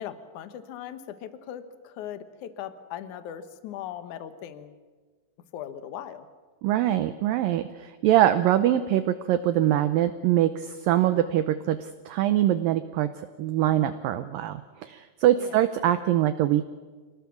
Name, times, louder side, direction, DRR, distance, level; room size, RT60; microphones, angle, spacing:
voice 1, 0.0-4.8 5.5-6.3 15.4-15.6, left 10 dB, 60° left, 10 dB, 2.2 m, -39 dB
voice 2, 6.6-13.1 13.4-16.7, right 12 dB, 75° right, 11 dB, 2.1 m, -23 dB
27.5 x 18.5 x 7.1 m, 1.4 s
omnidirectional pair, 4.8 m